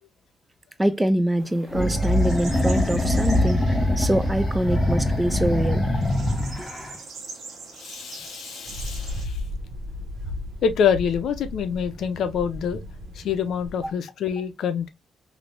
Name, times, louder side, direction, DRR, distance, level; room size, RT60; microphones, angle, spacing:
voice 1, 0.8-3.7 4.0-5.8 6.6-6.7 13.8-13.9, right 1 dB, 10° right, 0.4 m, -24 dB
sound 1, 1.4-9.2, right 4 dB, 60° right, 1.1 m, -43 dB
sound 2, 1.7-6.9, left 1 dB, 15° left, 0.7 m, -23 dB
voice 2, 7.7-9.4 10.6-12.8 13.1-14.9, left 7 dB, 70° left, 0.6 m, -26 dB
sound 3, 8.6-13.9, left 1 dB, 80° right, 1.2 m, -35 dB
3.3 x 2.6 x 2.4 m
cardioid pair, 90°, 0 cm